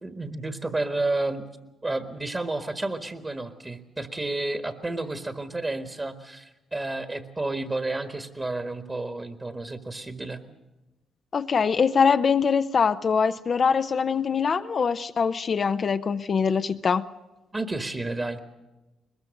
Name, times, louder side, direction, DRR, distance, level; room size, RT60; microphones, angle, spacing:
voice 1, 0.0-1.5 1.8-10.4 17.5-18.4, right 2 dB, 25° right, 1.6 m, -31 dB
voice 2, 11.3-17.0, left 6 dB, 50° left, 0.7 m, -23 dB
21.5 x 21.0 x 6.5 m
supercardioid pair, 60°, 0 cm